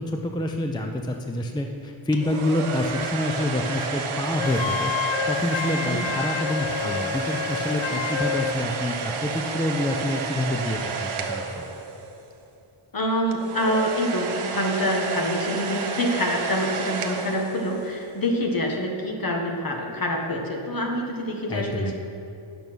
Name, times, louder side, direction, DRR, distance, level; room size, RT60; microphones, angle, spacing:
voice 1, 0.0-4.9 5.3-11.6 21.5-22.0, left 1 dB, 10° left, 2 dB, 0.5 m, -27 dB
sound 1, 2.1-12.2 13.3-18.0, right 4 dB, 80° right, 0.9 m, -31 dB
Wind instrument woodwind instrument, 4.4-8.6, left 9 dB, 65° left, 0.5 m, -29 dB
voice 2, 12.9-22.0, equal, 45° left, 1 dB, 1.4 m, -26 dB
9.0 x 6.7 x 6.1 m, 2.6 s
wide cardioid pair, 120°, 50 cm